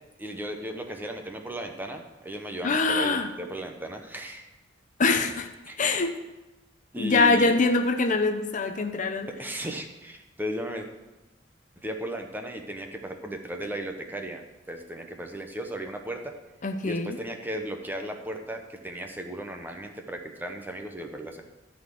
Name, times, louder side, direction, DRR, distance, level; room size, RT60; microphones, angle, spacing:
voice 1, 0.2-4.5 5.7-5.8 6.9-7.6 9.4-10.9 11.8-14.4 14.7-16.3 16.8-21.4, right 1 dB, 10° right, 4 dB, 0.9 m, -35 dB
voice 2, 2.6-3.3 5.0-5.5 5.8-6.2 7.0-9.3 16.6-17.2, left 3 dB, 40° left, 7 dB, 0.6 m, -24 dB
13.0 x 4.3 x 7.7 m, 1.1 s
head